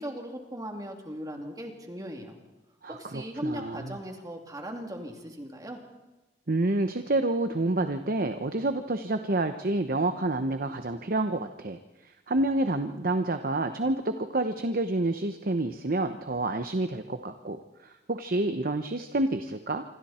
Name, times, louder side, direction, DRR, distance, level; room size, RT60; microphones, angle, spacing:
voice 1, 0.0-2.4 2.9-5.8, equal, 20° right, 2 dB, 3.0 m, -38 dB
voice 2, 2.8-3.9 6.5-11.8 12.3-19.8, right 2 dB, 55° right, 8 dB, 1.0 m, -28 dB
26.5 x 25.5 x 4.4 m, 1.1 s
head